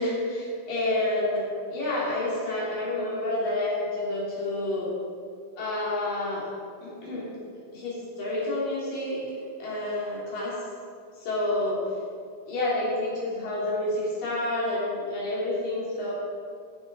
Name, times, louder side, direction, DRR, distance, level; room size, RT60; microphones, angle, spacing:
voice 1, 0.0-1.4 1.7-4.9 5.6-6.5 6.8-7.3 7.7-9.2 9.6-10.5 11.2-11.8 12.5-16.1, left 1 dB, 80° left, -7 dB, 4.7 m, -29 dB
15.5 x 9.6 x 4.2 m, 2.3 s
omnidirectional pair, 3.9 m